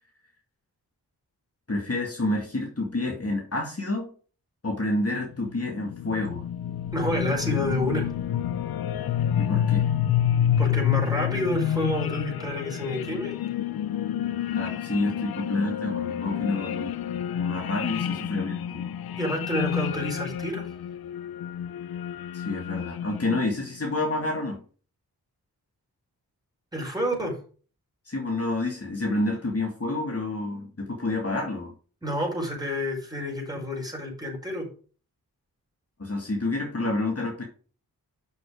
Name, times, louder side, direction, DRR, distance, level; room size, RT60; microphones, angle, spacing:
voice 1, 1.7-4.1 4.6-6.4 9.3-9.9 14.6-16.9 17.3-18.9 22.3-24.6 28.1-31.7 36.0-37.4, left 2 dB, 40° left, 0 dB, 2.2 m, -29 dB
sound 1, 5.2-23.6, left 10 dB, 75° left, 0.6 m, -29 dB
voice 2, 6.9-8.1 10.6-13.4 17.9-18.1 19.2-20.7 26.7-27.4 32.0-34.7, equal, 10° right, -1 dB, 5.1 m, -29 dB
7.1 x 6.0 x 4.9 m, 0.40 s
cardioid pair, 55°, 37 cm